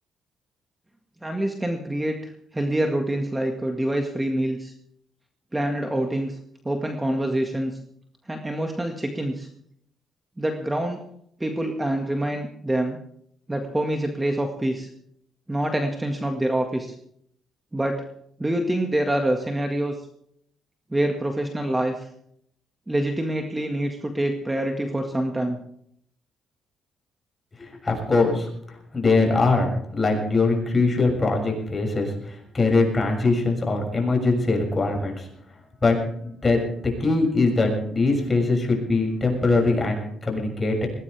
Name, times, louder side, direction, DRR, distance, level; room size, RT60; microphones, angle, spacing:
voice 1, 1.2-4.7 5.5-6.4 6.6-7.7 8.3-9.5 10.4-11.0 11.4-13.0 13.5-14.9 15.5-17.0 17.7-18.0 18.4-20.0 20.9-22.1 22.9-25.6, right 1 dB, 15° right, 3 dB, 1.9 m, -26 dB
voice 2, 27.6-35.3 35.8-36.0 36.2-40.9, left 3 dB, 25° left, 1 dB, 6.8 m, -22 dB
21.0 x 18.0 x 3.5 m, 0.70 s
cardioid pair, 90°, 0 cm